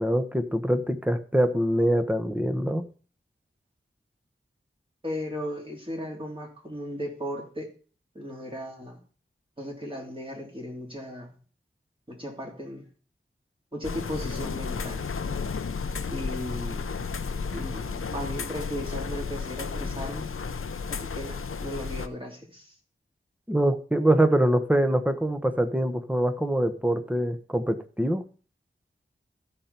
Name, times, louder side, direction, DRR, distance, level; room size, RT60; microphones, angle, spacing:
voice 1, 0.0-2.9 23.5-28.2, right 1 dB, 5° right, 9 dB, 1.1 m, -24 dB
voice 2, 5.0-7.7 8.2-9.0 9.6-11.3 12.1-12.8 13.7-15.0 16.1-16.9 17.5-20.3 20.9-22.7, equal, 25° right, -1 dB, 3.6 m, -36 dB
sound 1, 13.8-22.1, left 5 dB, 85° left, 0.6 m, -33 dB
14.0 x 5.4 x 4.4 m, 0.39 s
wide cardioid pair, 55°, 21 cm